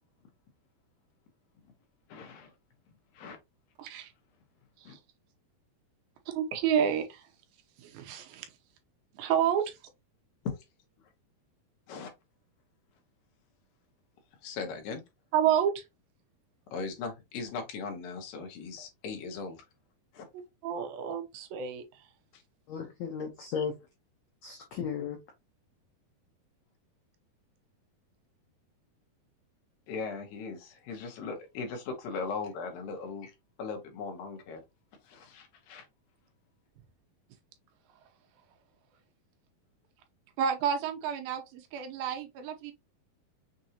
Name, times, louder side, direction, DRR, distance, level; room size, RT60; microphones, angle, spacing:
voice 1, 2.1-2.5 3.1-3.4 4.8-5.0 10.4-10.7 11.9-12.1 14.4-15.0 16.7-19.6 20.1-20.3 22.3-22.4 23.5-23.7 29.9-34.6 35.0-35.9, left 4 dB, 70° left, 2.7 m, -39 dB
voice 2, 3.8-4.1 6.4-7.2 7.8-8.4 9.2-9.8 15.3-15.8 20.6-21.8 40.4-42.7, right 8 dB, 75° right, 2.6 m, -29 dB
voice 3, 22.7-23.7 24.4-25.2, left 7 dB, 90° left, 1.6 m, -35 dB
6.6 x 2.6 x 2.8 m
omnidirectional pair, 4.4 m